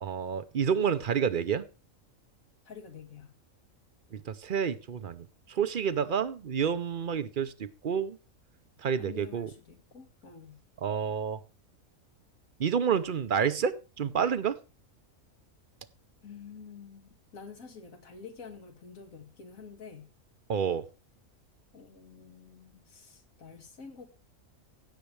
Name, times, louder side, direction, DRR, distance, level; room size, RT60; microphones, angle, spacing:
voice 1, 0.0-1.6 4.1-8.2 8.8-9.5 10.8-11.4 12.6-14.6 20.5-20.8, right 7 dB, 50° right, 0.7 m, -29 dB
voice 2, 2.7-3.4 9.0-10.6 16.2-20.1 21.7-24.1, left 5 dB, 80° left, 2.2 m, -48 dB
16.5 x 6.8 x 3.2 m
omnidirectional pair, 1.4 m